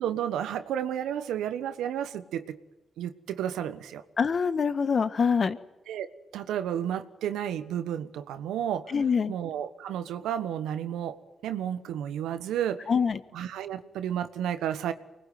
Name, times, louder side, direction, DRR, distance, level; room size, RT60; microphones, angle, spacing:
voice 1, 0.0-2.6 3.0-4.0 5.9-6.1 6.3-8.9 9.3-11.2 11.4-12.9 13.3-14.9, right 10 dB, 85° right, 12 dB, 1.3 m, -32 dB
voice 2, 4.2-5.6 8.9-9.3 12.9-13.2, left 6 dB, 55° left, 13 dB, 1.6 m, -25 dB
24.0 x 20.0 x 9.5 m, 1.0 s
supercardioid pair, 50°, 0 cm